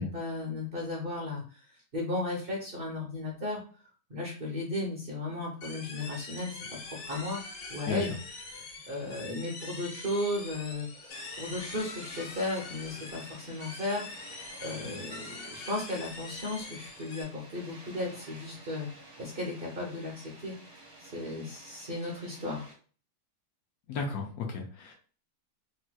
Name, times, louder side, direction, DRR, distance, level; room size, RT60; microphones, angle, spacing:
voice 1, 0.0-1.6 1.9-3.6 4.1-6.6 6.8-7.4 7.7-8.2 8.5-14.1 14.6-18.9 19.2-20.5 21.0-22.7, left 2 dB, 45° right, -1 dB, 0.7 m, -35 dB
sound 1, 5.6-17.2, left 3 dB, 90° left, 1.5 m, -44 dB
Water, 11.1-22.7, right 2 dB, 20° right, 1.2 m, -52 dB
voice 2, 23.9-24.9, left 4 dB, 70° left, 2 dB, 1.1 m, -34 dB
3.1 x 3.0 x 2.2 m, 0.40 s
omnidirectional pair, 1.7 m